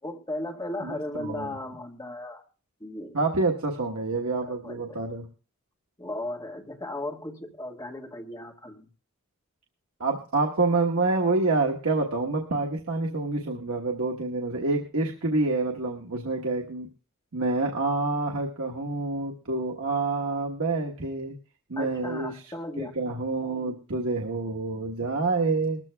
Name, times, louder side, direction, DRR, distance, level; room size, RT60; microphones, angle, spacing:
voice 1, 0.0-2.4 2.8-3.1 4.5-5.1 6.0-8.9 21.8-23.0, left 1 dB, 20° left, 2 dB, 1.4 m, -36 dB
voice 2, 0.8-1.6 3.1-5.2 10.0-16.9 17.3-21.3 21.7-22.3 22.8-25.8, right 3 dB, 80° right, 1 dB, 1.2 m, -27 dB
20.5 x 13.5 x 2.2 m, 0.36 s
head